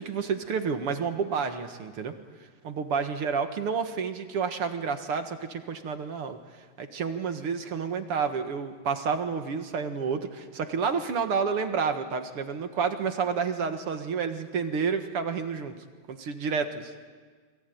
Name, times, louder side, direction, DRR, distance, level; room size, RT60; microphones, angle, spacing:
voice 1, 0.0-2.1 2.6-6.4 6.8-15.7 16.1-16.9, right 5 dB, 55° right, 7 dB, 2.2 m, -30 dB
28.0 x 22.5 x 9.4 m, 1.5 s
omnidirectional pair, 3.3 m